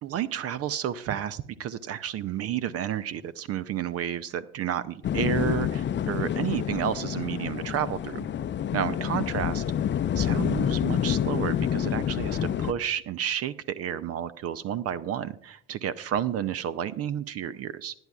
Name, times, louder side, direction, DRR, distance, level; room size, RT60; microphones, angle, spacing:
voice 1, 0.0-8.3 8.7-9.6 10.2-17.9, right 10 dB, 45° right, 16 dB, 0.6 m, -31 dB
sound 1, 5.0-12.7, left 9 dB, 30° left, 0.6 m, -28 dB
19.5 x 10.5 x 2.4 m, 0.65 s
figure-of-eight pair, 55°, 34 cm